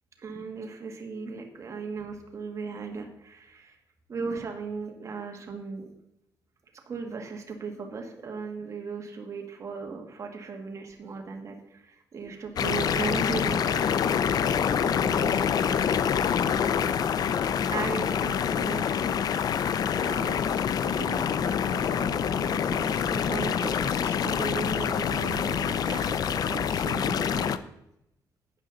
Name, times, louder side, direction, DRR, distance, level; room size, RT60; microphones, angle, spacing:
voice 1, 0.2-3.8 4.1-5.9 6.8-14.2 14.8-16.7 17.7-19.4 20.0-20.5 20.7-27.5, right 5 dB, 40° right, 3 dB, 1.6 m, -37 dB
sound 1, 12.6-27.6, left 8 dB, 55° left, 0.5 m, -26 dB
12.5 x 8.5 x 3.9 m, 0.81 s
cardioid pair, 120°, 8 cm